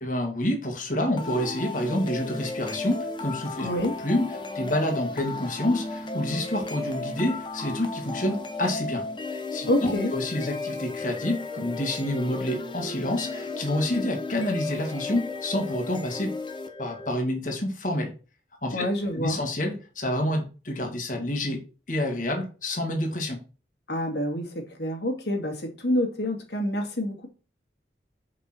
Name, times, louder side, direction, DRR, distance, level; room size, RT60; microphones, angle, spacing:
voice 1, 0.0-3.7 4.0-16.3 16.8-18.1 18.6-18.9 19.2-23.4, left 1 dB, 45° left, 2.0 m, -28 dB
sound 1, 1.2-17.2, left 3 dB, 25° left, 1.0 m, -34 dB
voice 2, 3.6-4.0 9.7-10.1 18.7-19.4 23.9-27.3, left 1 dB, 75° left, 2.3 m, -27 dB
6.5 x 5.4 x 4.4 m
head